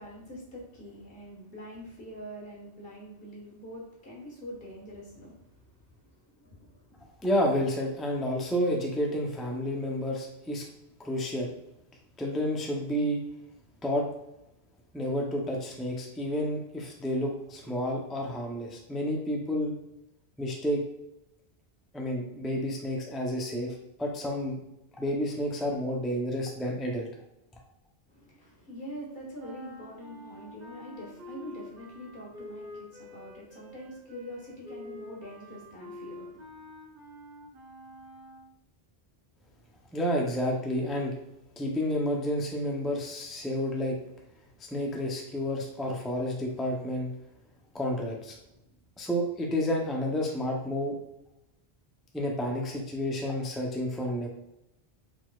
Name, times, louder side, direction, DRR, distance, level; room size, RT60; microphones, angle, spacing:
voice 1, 0.0-7.0 28.1-36.7, equal, 65° left, -3 dB, 1.6 m, -45 dB
voice 2, 7.2-10.6 11.0-11.5 12.2-13.2 13.8-14.1 14.9-19.7 20.4-20.8 21.9-24.6 25.0-27.1 39.9-41.1 41.6-44.0 44.7-47.1 47.7-48.4 49.0-51.0 52.1-54.3, equal, ahead, -1 dB, 0.5 m, -30 dB
sound 1, 29.4-38.5, left 1 dB, 60° right, 1.3 m, -47 dB
4.6 x 4.0 x 2.3 m, 0.87 s
omnidirectional pair, 1.1 m